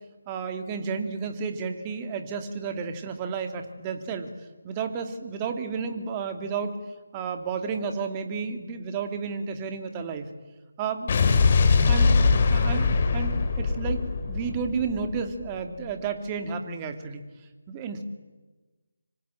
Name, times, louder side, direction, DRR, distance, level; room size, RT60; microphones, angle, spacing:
voice 1, 0.3-4.3 4.6-6.8 7.1-10.3 10.8-11.1 11.9-17.3 17.7-18.0, right 5 dB, 20° right, 6 dB, 2.4 m, -32 dB
Explosion, 11.1-15.4, left 4 dB, 35° left, 3.2 m, -22 dB
26.0 x 25.5 x 9.1 m, 1.2 s
figure-of-eight pair, 155°, 0 cm